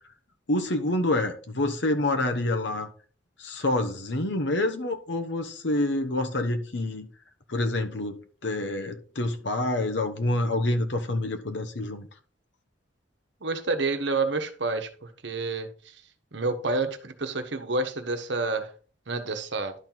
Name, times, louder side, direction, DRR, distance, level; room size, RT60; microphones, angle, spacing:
voice 1, 0.5-2.9 3.4-7.1 7.5-12.1, left 2 dB, 65° left, 1.1 m, -27 dB
voice 2, 13.4-15.7 16.3-18.7 19.1-19.7, right 3 dB, 65° right, 1.1 m, -29 dB
11.5 x 4.5 x 3.9 m
head